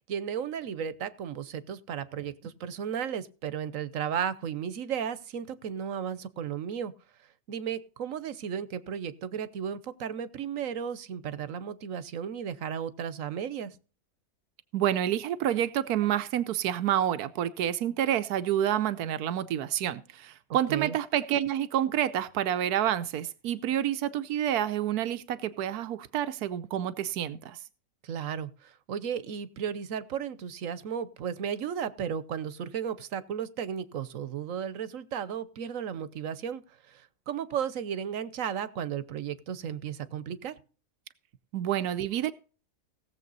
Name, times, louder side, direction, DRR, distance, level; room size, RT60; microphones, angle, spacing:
voice 1, 0.1-6.9 7.5-13.8 20.7-21.0 28.0-36.6 36.9-40.6, right 8 dB, 65° right, 16 dB, 1.2 m, -34 dB
voice 2, 14.7-27.6 41.5-42.3, right 11 dB, 90° right, 13 dB, 1.2 m, -28 dB
17.5 x 7.4 x 4.0 m, 0.37 s
omnidirectional pair, 1.6 m